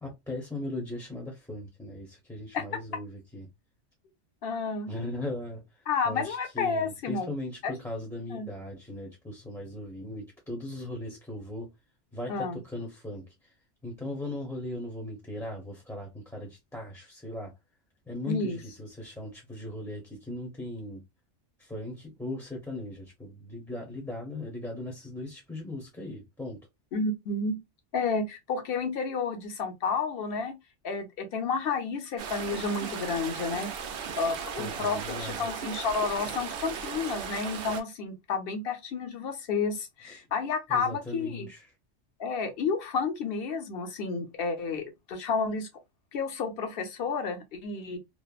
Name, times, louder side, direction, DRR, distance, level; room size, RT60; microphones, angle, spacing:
voice 1, 0.0-3.5 4.9-5.6 6.0-11.7 12.1-13.3 13.8-17.5 18.1-21.0 21.6-26.6 34.5-35.5 40.0-40.2 40.7-41.6, left 1 dB, 5° left, 0.5 m, -38 dB
voice 2, 4.4-4.9 5.9-7.3 7.6-7.7 8.3-8.5 12.3-12.6 18.3-18.6 26.9-27.6 27.9-30.5 30.8-33.7 34.2-41.5 42.2-45.7 46.1-48.0, left 4 dB, 60° left, 0.8 m, -31 dB
sound 1, 32.2-37.8, right 6 dB, 60° right, 0.7 m, -36 dB
3.1 x 2.0 x 2.3 m
omnidirectional pair, 1.2 m